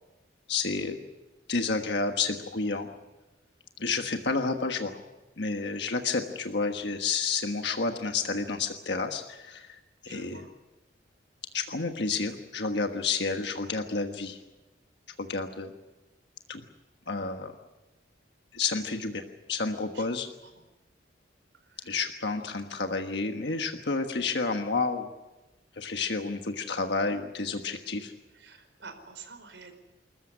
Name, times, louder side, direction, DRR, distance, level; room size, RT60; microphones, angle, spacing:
voice 1, 0.5-1.0 1.5-2.9 3.8-5.0 5.4-9.8 10.0-10.4 11.5-14.4 15.2-15.7 16.5-16.6 17.1-17.5 18.5-19.2 19.5-20.3 21.8-25.1 25.8-28.1, left 4 dB, 60° left, 5 dB, 1.4 m, -30 dB
voice 2, 10.0-10.5 19.9-20.0 20.5-20.6 21.7-22.0 28.3-29.7, right 5 dB, 70° right, 6 dB, 4.8 m, -47 dB
26.5 x 14.5 x 9.9 m, 1.1 s
head